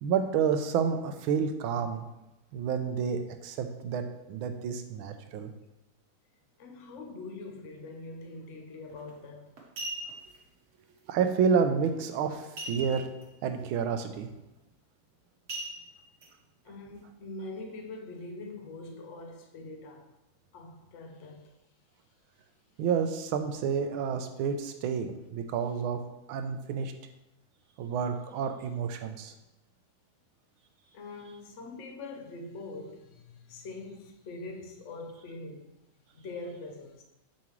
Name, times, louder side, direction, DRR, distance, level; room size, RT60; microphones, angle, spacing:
voice 1, 0.0-2.1 2.5-5.5 11.1-13.1 13.4-14.3 22.8-26.0 26.3-26.9 27.8-29.3, right 6 dB, 80° right, 1.4 m, -29 dB
voice 2, 6.6-9.5 16.6-20.1 20.5-21.5 30.9-35.7 36.1-37.0, left 2 dB, 65° left, 0.7 m, -43 dB
sound 1, 8.9-9.1 9.6-10.4 12.6-13.2 13.6-13.7 14.1-14.4 15.5-16.3 16.8-16.9, right 1 dB, 45° right, 1.2 m, -39 dB
7.2 x 5.2 x 3.1 m
omnidirectional pair, 2.3 m